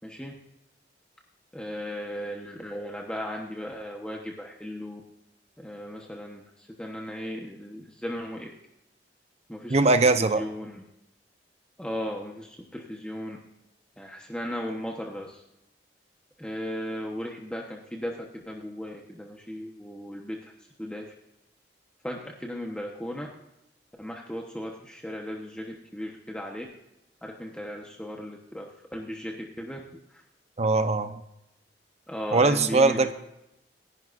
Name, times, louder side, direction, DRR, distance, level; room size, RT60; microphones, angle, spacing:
voice 1, 0.0-0.3 1.5-5.0 5.6-8.5 9.5-9.8 10.3-10.8 11.8-13.4 14.0-15.4 16.4-20.5 20.8-21.1 22.0-23.3 24.0-26.7 27.2-29.8 30.1-30.2 32.1-33.1, equal, 5° left, 0 dB, 1.1 m, -36 dB
voice 2, 9.7-10.4 30.6-31.1 32.3-33.1, right 3 dB, 40° right, 9 dB, 0.9 m, -21 dB
27.0 x 11.0 x 2.6 m, 0.87 s
head